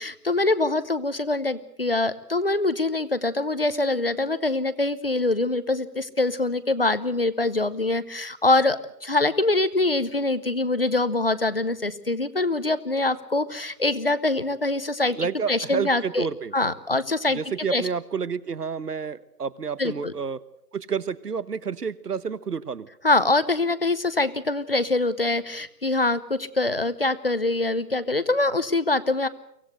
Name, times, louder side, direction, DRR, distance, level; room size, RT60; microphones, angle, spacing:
voice 1, 0.0-15.2 15.5-16.3 16.5-17.4 17.7-17.8 19.8-20.1 23.0-29.3, left 2 dB, 35° left, 14 dB, 0.8 m, -24 dB
voice 2, 15.2-16.5 17.3-20.4 20.7-22.9, right 6 dB, 70° right, 18 dB, 1.3 m, -30 dB
24.0 x 17.0 x 8.0 m, 0.79 s
hypercardioid pair, 175°, 49 cm